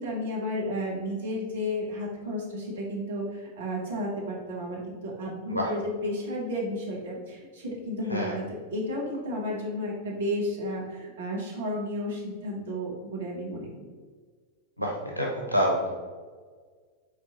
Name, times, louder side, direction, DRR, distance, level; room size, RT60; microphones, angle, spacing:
voice 1, 0.0-8.5 8.7-13.9, left 1 dB, 60° right, -3 dB, 1.3 m, -32 dB
voice 2, 14.8-15.9, equal, 85° left, -2 dB, 0.6 m, -27 dB
4.5 x 4.4 x 2.6 m, 1.5 s
figure-of-eight pair, 90°, 0 cm